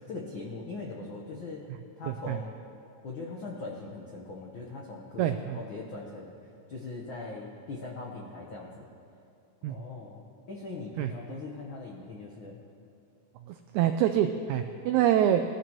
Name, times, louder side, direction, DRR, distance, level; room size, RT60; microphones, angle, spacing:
voice 1, 0.1-1.7 2.0-2.5 3.0-6.3 6.7-8.8 9.7-12.6, left 3 dB, 75° left, -2 dB, 1.1 m, -40 dB
voice 2, 5.2-5.6 9.6-9.7 11.0-11.1 13.5-15.4, right 11 dB, 85° right, 7 dB, 1.7 m, -25 dB
20.0 x 13.5 x 3.0 m, 2.6 s
omnidirectional pair, 3.9 m